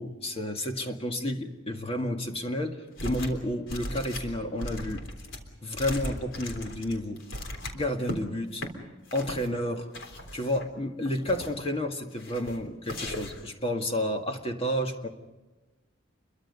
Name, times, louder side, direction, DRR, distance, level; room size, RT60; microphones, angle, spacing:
voice 1, 0.0-5.0 5.6-7.2 7.6-8.6 9.1-9.9 10.3-15.1, left 1 dB, 30° left, 3 dB, 1.9 m, -31 dB
sound 1, 3.0-3.4 3.7-8.2 8.5-8.7 9.1-9.5 9.9-10.7 11.0-11.6 12.2-12.6 12.8-13.5, left 1 dB, 75° left, 3.6 m, -38 dB
29.0 x 23.5 x 5.5 m, 1.1 s
head